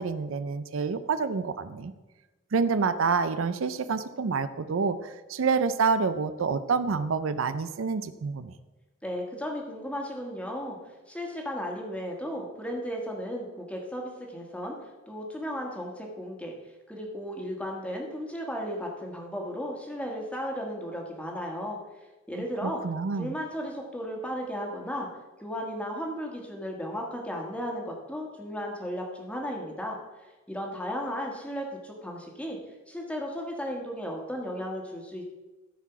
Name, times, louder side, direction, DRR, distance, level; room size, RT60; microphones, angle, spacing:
voice 1, 0.0-1.9 2.5-8.5 22.6-23.3, right 5 dB, 75° right, 12 dB, 0.5 m, -28 dB
voice 2, 9.0-14.8 15.1-16.5 16.9-21.8 22.3-22.8 23.1-25.1 25.4-32.6 32.9-35.2, equal, 5° left, 0 dB, 1.5 m, -35 dB
13.5 x 4.8 x 5.8 m, 1.2 s
head